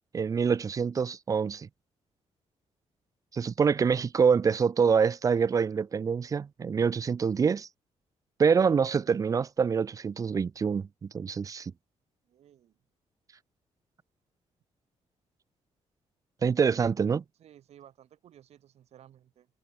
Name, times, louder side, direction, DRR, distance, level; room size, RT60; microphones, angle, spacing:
voice 1, 0.1-1.7 3.3-7.7 8.4-10.9 11.1-11.7 16.4-17.2, right 6 dB, 30° right, 0.7 m, -25 dB
voice 2, 12.3-12.7 17.4-19.5, right 11 dB, 65° right, 7.8 m, -56 dB
wide cardioid pair, 175°, 12 cm